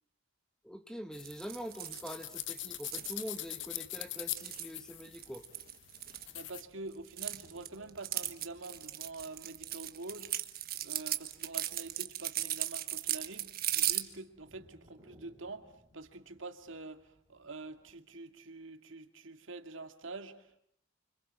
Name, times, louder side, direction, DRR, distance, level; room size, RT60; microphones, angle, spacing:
voice 1, 0.6-5.5, equal, 5° left, 1.5 m, -44 dB
sound 1, 1.1-6.6, left 14 dB, 65° left, 1.1 m, -43 dB
sound 2, 1.2-3.4 4.2-6.6 6.9-14.0, right 13 dB, 50° right, 1.4 m, -37 dB
sound 3, 6.0-18.0, equal, 15° right, 7.3 m, -65 dB
voice 2, 6.3-10.5 10.8-20.6, right 3 dB, 75° right, 2.2 m, -46 dB
30.0 x 26.0 x 7.6 m
head